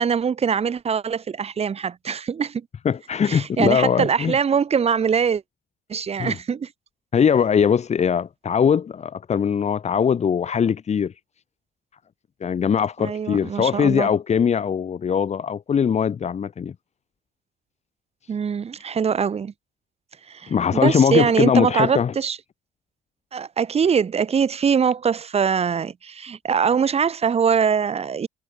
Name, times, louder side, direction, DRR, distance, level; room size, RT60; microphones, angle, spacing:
voice 1, 0.0-2.6 3.2-5.4 5.9-6.7 13.0-14.1 18.3-19.5 20.3-22.4 23.3-28.3, right 6 dB, 35° right, 4.7 m, -22 dB
voice 2, 2.8-4.3 6.2-6.4 7.1-11.1 12.4-16.7 20.5-22.1, left 7 dB, 40° left, 8.0 m, -21 dB
cardioid pair, 110°, 17 cm